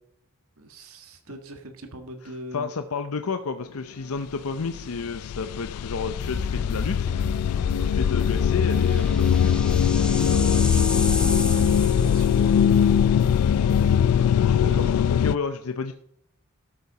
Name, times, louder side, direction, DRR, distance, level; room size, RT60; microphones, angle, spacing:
voice 1, 0.6-2.7 8.3-9.1 10.0-13.0 13.4-13.6 14.1-14.9, right 1 dB, 70° right, 5 dB, 1.7 m, -40 dB
voice 2, 2.2-7.1 7.8-9.7 14.4-15.9, left 4 dB, 75° left, 8 dB, 0.7 m, -31 dB
sound 1, 4.3-4.4 4.6-15.4, left 8 dB, 90° left, 0.3 m, -21 dB
sound 2, 6.2-14.1, left 1 dB, 20° left, 3.2 m, -34 dB
sound 3, 8.2-12.8, left 1 dB, 5° left, 0.8 m, -34 dB
12.5 x 7.0 x 4.9 m, 0.69 s
head